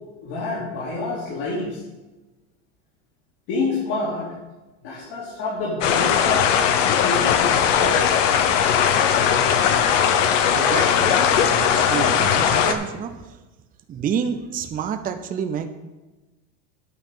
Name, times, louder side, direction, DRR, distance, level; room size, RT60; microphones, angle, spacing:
voice 1, 0.2-1.8 3.5-4.3 4.8-6.5 7.0-8.2, left 2 dB, 65° left, -6 dB, 3.3 m, -28 dB
sound 1, 5.8-12.7, left 8 dB, 85° left, 1.0 m, -19 dB
voice 2, 10.5-13.2 13.9-15.7, right 7 dB, 25° right, 8 dB, 0.6 m, -28 dB
9.3 x 5.7 x 6.7 m, 1.1 s
supercardioid pair, 120°, 37 cm